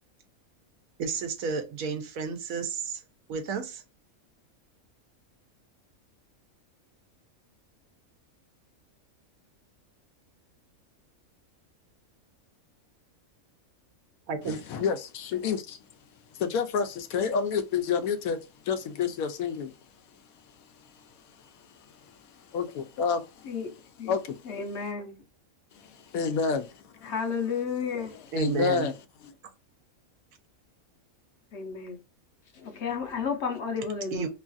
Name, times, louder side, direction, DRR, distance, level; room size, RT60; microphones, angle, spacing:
voice 1, 1.0-3.0 3.3-3.8 14.3-14.6 28.3-28.9 34.1-34.3, right 6 dB, 75° right, 1.1 m, -31 dB
voice 2, 14.4-15.8 16.3-18.4 18.6-19.7 20.8-24.9 25.7-28.9 29.2-29.3, left 6 dB, 85° left, 1.0 m, -31 dB
voice 3, 24.5-25.2 27.1-28.1 31.5-32.0 32.8-34.2, left 6 dB, 60° left, 0.8 m, -31 dB
3.0 x 2.3 x 2.5 m
omnidirectional pair, 1.5 m